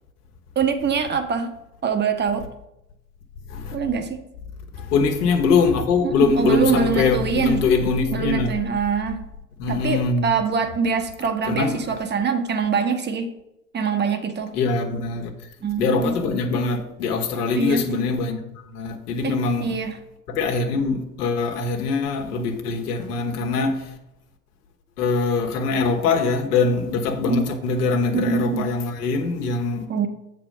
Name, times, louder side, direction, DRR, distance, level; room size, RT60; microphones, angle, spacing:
voice 1, 0.5-1.5 1.8-2.5 3.7-4.2 6.0-7.6 8.1-9.2 9.7-13.3 13.7-14.5 15.6-16.2 17.5-18.1 19.2-20.0 27.3-27.5 28.1-28.7 29.9-30.1, right 5 dB, 20° right, 1.1 m, -24 dB
voice 2, 4.7-8.5 9.6-10.3 11.4-12.0 14.5-15.3 15.8-19.7 20.3-23.9 25.0-29.9, left 4 dB, 80° left, 1.5 m, -23 dB
7.1 x 4.3 x 6.6 m
hypercardioid pair, 100°, 46 cm